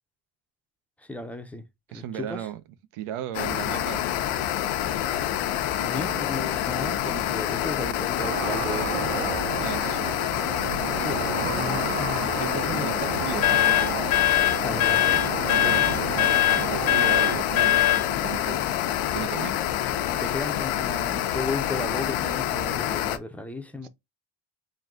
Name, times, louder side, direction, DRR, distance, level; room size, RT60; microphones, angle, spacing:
voice 1, 1.1-1.6 1.9-2.5 5.8-9.1 10.9-12.9 14.6-15.1 20.1-23.9, left 2 dB, 5° left, 0.4 m, -35 dB
voice 2, 1.9-2.6 2.9-4.0 5.9-6.6 9.6-10.3 12.4-14.2 15.5-18.7 19.1-19.6 23.8-23.9, right 11 dB, 90° right, 0.8 m, -36 dB
sound 1, 3.3-23.2, left 11 dB, 85° left, 0.8 m, -27 dB
sound 2, 8.2-17.4, right 11 dB, 60° right, 0.7 m, -33 dB
sound 3, 13.4-18.1, left 14 dB, 50° left, 0.7 m, -22 dB
3.9 x 2.6 x 3.5 m
cardioid pair, 140°, 49 cm